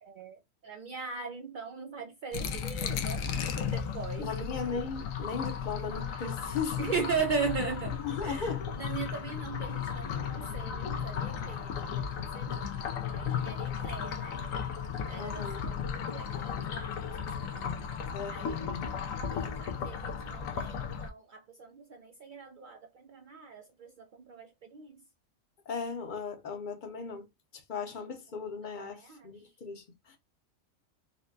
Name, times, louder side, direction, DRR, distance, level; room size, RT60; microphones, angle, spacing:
voice 1, 0.0-3.3 3.5-4.4 6.8-12.6 13.1-14.4 15.1-17.8 18.3-18.6 19.3-25.0 28.8-29.3, right 5 dB, 75° right, 0.4 m, -39 dB
sound 1, 2.3-21.1, left 7 dB, 90° left, 1.0 m, -35 dB
voice 2, 4.2-7.0 8.0-8.6 15.2-15.6 18.1-18.9 25.7-27.3 27.5-30.2, left 5 dB, 45° left, 0.7 m, -37 dB
4.3 x 2.1 x 2.6 m
omnidirectional pair, 1.4 m